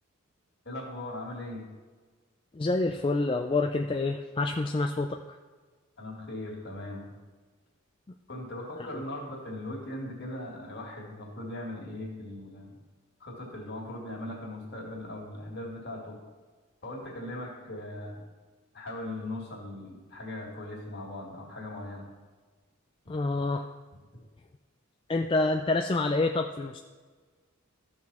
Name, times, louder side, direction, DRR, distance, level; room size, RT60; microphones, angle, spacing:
voice 1, 0.6-1.7 6.0-7.1 8.3-12.8 13.2-16.2 16.8-18.2 18.7-22.1 23.0-23.1, left 1 dB, 50° left, -1 dB, 2.3 m, -39 dB
voice 2, 2.5-5.2 8.9-9.0 23.1-23.7 25.1-26.8, left 2 dB, 25° left, 4 dB, 0.4 m, -27 dB
14.0 x 6.2 x 4.3 m, 1.4 s
head